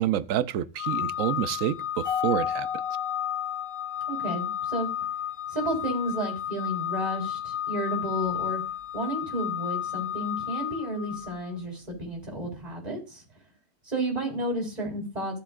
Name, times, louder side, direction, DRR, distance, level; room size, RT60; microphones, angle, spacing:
voice 1, 0.0-2.7, right 11 dB, 70° right, 0.9 m, -28 dB
Organ, 0.8-11.5, left 10 dB, 55° left, 0.5 m, -32 dB
Mallet percussion, 2.0-4.5, left 7 dB, 5° right, 3.0 m, -33 dB
voice 2, 4.1-4.9 5.5-8.6 8.9-13.2 13.8-15.4, right 1 dB, 25° right, 4.1 m, -32 dB
14.5 x 7.2 x 2.5 m
omnidirectional pair, 1.6 m